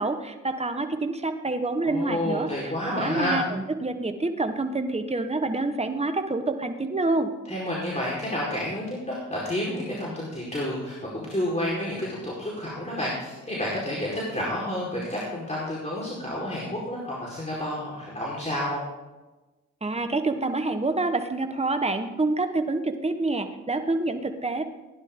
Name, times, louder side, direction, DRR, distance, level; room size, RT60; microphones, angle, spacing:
voice 1, 0.0-7.3 19.8-24.6, right 2 dB, 20° right, 7 dB, 1.5 m, -27 dB
voice 2, 1.8-3.5 7.5-18.8, left 1 dB, 20° left, -6 dB, 4.8 m, -30 dB
16.5 x 11.0 x 3.9 m, 1.1 s
hypercardioid pair, 40°, 33 cm